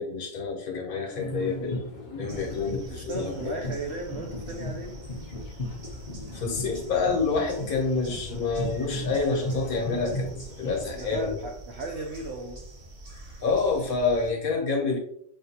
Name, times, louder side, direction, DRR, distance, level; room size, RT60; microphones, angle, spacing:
voice 1, 0.0-3.6 6.3-11.4 13.4-15.0, left 4 dB, 60° left, 1 dB, 1.1 m, -28 dB
sound 1, 1.1-11.2, left 1 dB, 75° left, 0.4 m, -36 dB
sound 2, 2.3-14.3, right 2 dB, 40° right, 2.1 m, -45 dB
voice 2, 2.4-5.0 10.9-12.6, right 2 dB, 80° right, 1 dB, 0.6 m, -36 dB
5.6 x 2.6 x 2.7 m, 0.71 s
omnidirectional pair, 1.9 m